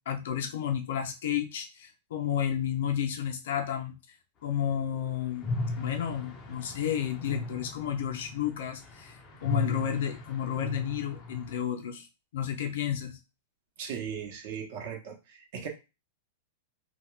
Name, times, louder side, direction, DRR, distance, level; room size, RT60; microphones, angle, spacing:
voice 1, 0.1-3.9 4.4-5.5 5.8-9.1 9.4-12.1 12.3-13.2, left 9 dB, 75° left, 0.6 m, -31 dB
sound 1, 5.4-11.6, left 2 dB, 25° left, 0.5 m, -37 dB
voice 2, 13.8-15.7, right 7 dB, 50° right, 0.8 m, -38 dB
2.3 x 2.3 x 3.1 m
supercardioid pair, 150°, 0 cm